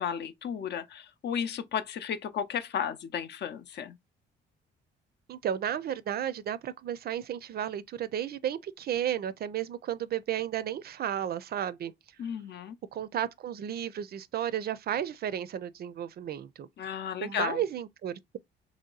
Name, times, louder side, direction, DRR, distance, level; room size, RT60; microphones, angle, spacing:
voice 1, 0.0-4.0 12.2-12.8 16.8-17.6, left 8 dB, 60° left, 0.6 m, -34 dB
voice 2, 5.3-11.9 12.9-18.4, right 10 dB, 50° right, 0.4 m, -33 dB
3.0 x 2.8 x 3.8 m
cardioid pair, 90°, 20 cm